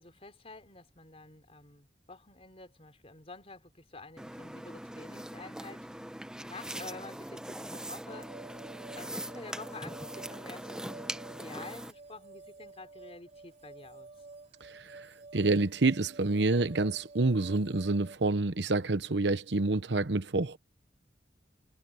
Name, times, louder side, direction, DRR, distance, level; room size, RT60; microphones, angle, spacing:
voice 1, 0.0-5.9 6.5-8.3 8.9-14.1, left 3 dB, 35° left, 4.1 m, -49 dB
sound 1, 4.2-11.9, right 1 dB, 5° right, 0.7 m, -41 dB
sound 2, 8.1-18.2, right 3 dB, 40° right, 3.8 m, -51 dB
voice 2, 14.6-15.1 15.3-20.6, right 3 dB, 80° right, 1.0 m, -28 dB
head